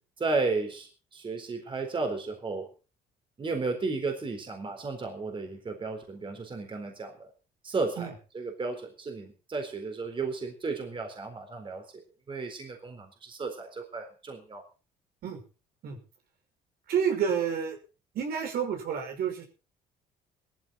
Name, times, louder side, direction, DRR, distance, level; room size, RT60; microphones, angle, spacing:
voice 1, 0.2-2.7 3.4-7.3 7.6-11.8 12.3-14.6, right 3 dB, 30° right, 4 dB, 4.1 m, -33 dB
voice 2, 16.9-17.8 18.1-19.5, right 7 dB, 65° right, 4 dB, 5.6 m, -29 dB
18.5 x 14.5 x 4.0 m, 0.34 s
cardioid pair, 110°, 17 cm